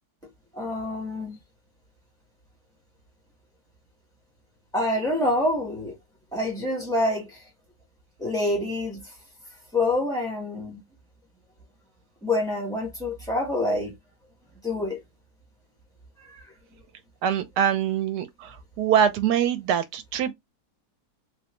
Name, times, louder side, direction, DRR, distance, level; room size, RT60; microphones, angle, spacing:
voice 1, 0.5-1.4 4.7-5.9 6.3-7.4 8.2-9.1 9.7-10.8 12.2-13.9 14.6-15.0 16.2-16.5, left 1 dB, 5° left, 0.4 m, -27 dB
voice 2, 17.2-20.3, right 9 dB, 80° right, 1.2 m, -24 dB
3.7 x 2.1 x 2.9 m
omnidirectional pair, 1.8 m